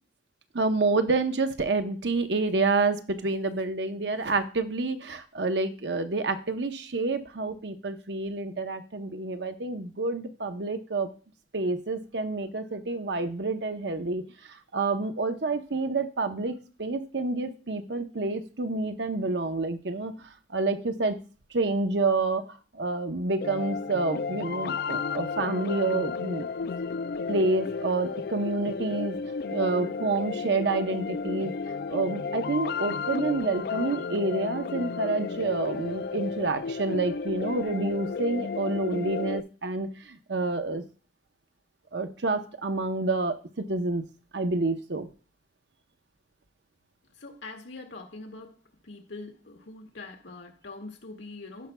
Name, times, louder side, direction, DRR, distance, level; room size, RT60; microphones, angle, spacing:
voice 1, 0.5-11.1 11.5-14.2 14.5-20.1 20.5-21.2 21.5-22.4 22.7-26.5 27.3-29.2 29.5-31.5 31.9-40.8 41.9-44.0 44.3-45.1, right 3 dB, 70° right, 0.9 m, -28 dB
sound 1, 23.4-39.4, left 5 dB, 60° left, 0.3 m, -33 dB
voice 2, 47.2-51.7, left 3 dB, 85° left, 1.8 m, -43 dB
16.5 x 5.5 x 2.3 m
head